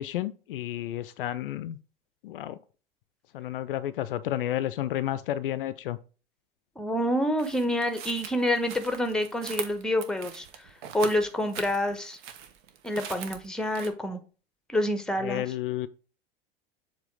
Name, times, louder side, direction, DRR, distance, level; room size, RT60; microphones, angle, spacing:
voice 1, 0.0-1.8 2.2-2.6 3.3-6.0 15.2-15.9, left 13 dB, 65° left, 0.5 m, -31 dB
voice 2, 6.8-12.2 12.8-14.2 14.7-15.4, left 1 dB, ahead, 1.0 m, -28 dB
sound 1, 7.4-13.9, right 8 dB, 55° right, 1.1 m, -42 dB
7.4 x 2.9 x 4.9 m
figure-of-eight pair, 80°, 29 cm